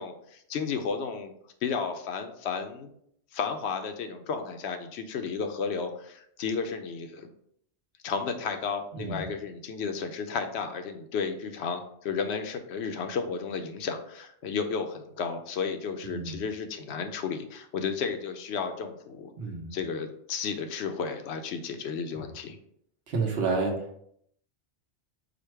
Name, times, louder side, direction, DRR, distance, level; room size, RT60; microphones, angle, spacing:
voice 1, 0.0-1.3 1.6-2.9 3.3-7.3 8.0-19.3 19.7-22.6, left 5 dB, 75° left, 7 dB, 0.8 m, -33 dB
voice 2, 8.9-9.3 16.0-16.4 19.4-19.8 22.1-22.3 23.1-24.0, right 4 dB, 65° right, 1 dB, 1.1 m, -30 dB
5.0 x 2.2 x 4.5 m, 0.70 s
omnidirectional pair, 1.1 m